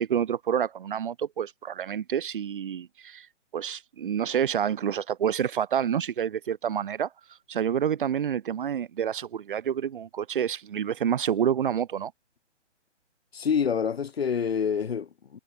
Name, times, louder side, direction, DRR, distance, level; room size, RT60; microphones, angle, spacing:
voice 1, 0.0-3.3 3.5-7.1 7.5-12.1, right 8 dB, 45° right, 1.1 m, -28 dB
voice 2, 13.3-15.4, left 7 dB, 55° left, 3.8 m, -27 dB
hypercardioid pair, 155°, 36 cm